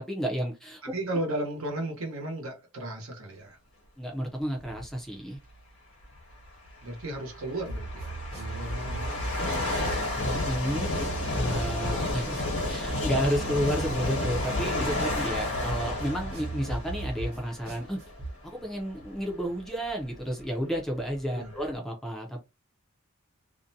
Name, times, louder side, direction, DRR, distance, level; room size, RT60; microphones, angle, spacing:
voice 1, 0.0-0.8 4.0-5.4 10.1-11.1 11.3-12.4 12.7-18.0 18.4-22.4, equal, ahead, 0.4 m, -31 dB
voice 2, 0.8-3.6 6.8-9.4 21.3-21.5, right 1 dB, 70° right, 0.9 m, -35 dB
sound 1, 4.6-4.9 6.0-6.1 6.9-18.3 18.9-19.1 19.9-20.0 20.2-21.7, left 2 dB, 75° left, 1.0 m, -32 dB
sound 2, 7.7-18.3, right 1 dB, 45° right, 0.9 m, -37 dB
2.5 x 2.1 x 2.6 m
head